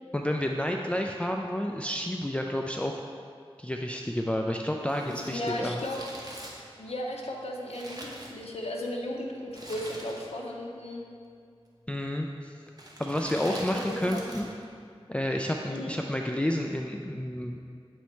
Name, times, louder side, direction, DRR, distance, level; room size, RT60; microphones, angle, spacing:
voice 1, 0.1-3.0 3.6-5.8 11.9-12.5 13.0-14.5 15.1-17.6, left 1 dB, 10° left, 1 dB, 0.3 m, -30 dB
Crumpling crinkling, 4.8-8.8 9.5-10.5 10.8-10.9 11.7-12.1 12.7-14.6 14.9-15.0, right 1 dB, 40° right, 1.0 m, -44 dB
voice 2, 5.0-6.0 6.8-11.0 13.3-14.2 15.7-15.9, left 1 dB, 85° left, -1 dB, 0.6 m, -35 dB
8.2 x 3.1 x 4.4 m, 2.3 s
wide cardioid pair, 50°, 10 cm